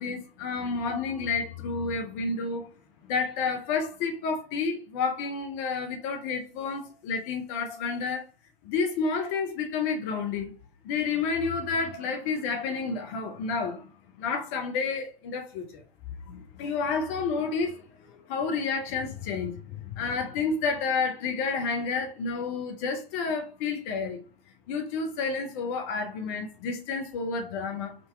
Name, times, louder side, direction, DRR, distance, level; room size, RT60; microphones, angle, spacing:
voice 1, 0.0-2.7 3.0-8.2 8.6-10.5 10.8-13.9 14.2-15.8 16.3-24.3 24.7-27.9, left 4 dB, 15° left, 0.4 m, -30 dB
3.7 x 2.7 x 3.3 m
figure-of-eight pair, 125°, 30 cm